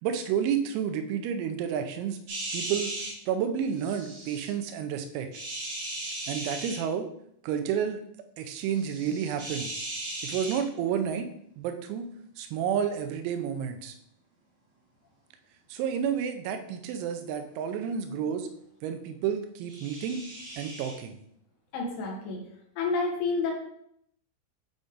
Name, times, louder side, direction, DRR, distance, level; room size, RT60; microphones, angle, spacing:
voice 1, 0.0-2.2 2.5-2.9 3.3-5.3 6.3-7.1 7.4-8.0 8.4-9.7 10.2-11.3 11.6-12.1 12.4-13.9 15.7-18.5 18.8-20.2 20.6-21.2, right 8 dB, 90° right, 7 dB, 3.4 m, -30 dB
sound 1, 2.3-3.1 3.8-4.5 5.3-6.8 8.7-10.6 19.7-21.0, right 2 dB, 70° right, 1.7 m, -37 dB
voice 2, 21.7-22.4 22.8-23.5, left 4 dB, 75° left, 0 dB, 3.3 m, -29 dB
8.8 x 4.0 x 3.6 m, 0.72 s
omnidirectional pair, 5.9 m